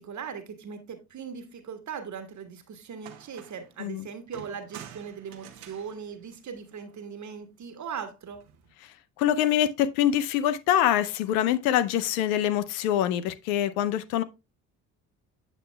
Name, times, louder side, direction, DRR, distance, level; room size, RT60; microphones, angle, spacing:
voice 1, 0.0-8.4, right 6 dB, 40° right, 1.3 m, -39 dB
sound 1, 2.6-2.7 3.0-3.8 4.3-7.0 8.3-8.7, right 9 dB, 75° right, 0.8 m, -48 dB
voice 2, 8.8-14.2, left 11 dB, 70° left, 0.6 m, -25 dB
7.9 x 7.3 x 2.2 m
figure-of-eight pair, 45°, 44 cm